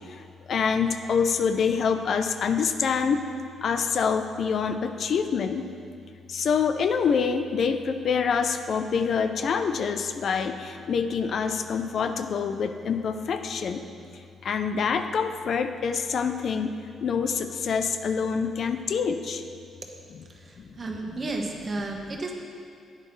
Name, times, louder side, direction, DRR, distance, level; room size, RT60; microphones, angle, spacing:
voice 1, 0.5-3.2 3.6-5.7 6.3-13.9 14.4-16.8 17.0-19.4 20.1-20.2 20.6-20.7, left 6 dB, 60° left, 8 dB, 0.5 m, -26 dB
voice 2, 20.3-22.3, right 2 dB, 35° right, 1 dB, 1.2 m, -33 dB
10.0 x 8.9 x 3.2 m, 2.4 s
cardioid pair, 90°, 0 cm